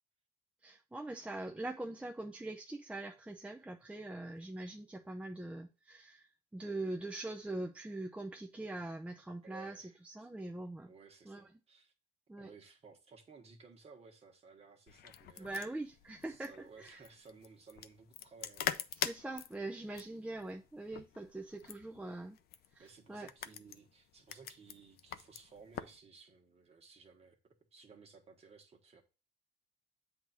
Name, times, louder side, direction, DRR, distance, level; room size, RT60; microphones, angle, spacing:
voice 1, 0.6-9.7 10.0-10.9 11.3-11.4 12.3-12.5 15.4-16.5 16.8-17.0 19.0-22.4 22.7-23.3, right 2 dB, 5° right, 0.6 m, -43 dB
voice 2, 9.4-10.3 10.9-11.9 12.4-15.8 16.2-18.9 22.8-27.4 27.7-29.0, right 5 dB, 35° right, 1.4 m, -58 dB
sound 1, 14.9-26.0, left 10 dB, 65° left, 0.5 m, -44 dB
7.9 x 2.8 x 5.8 m
cardioid pair, 110°, 17 cm